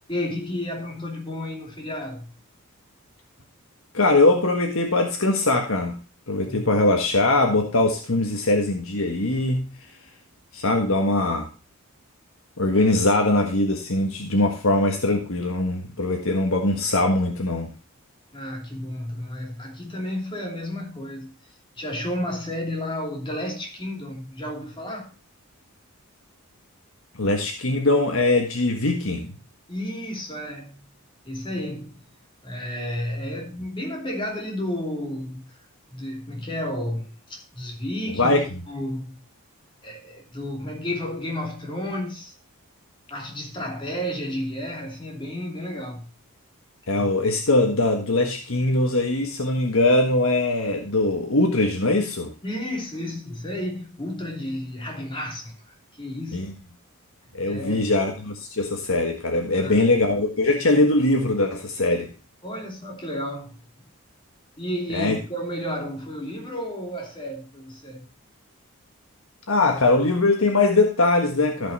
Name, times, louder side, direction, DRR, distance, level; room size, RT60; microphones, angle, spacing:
voice 1, 0.1-2.3 6.4-6.7 18.3-21.3 21.8-25.1 29.7-31.0 31.2-32.1 32.4-35.6 35.9-39.2 39.8-42.3 43.1-46.1 47.0-47.1 52.4-56.5 57.5-57.9 59.6-59.9 62.4-63.6 64.6-68.1, left 1 dB, 20° left, 2.8 m, -32 dB
voice 2, 3.9-6.0 6.3-9.7 10.5-11.5 12.6-17.7 27.2-29.3 38.2-38.4 46.9-52.3 56.3-56.5 57.3-62.1 64.9-65.2 69.5-71.7, left 2 dB, 65° left, 1.6 m, -21 dB
14.5 x 5.7 x 4.2 m
head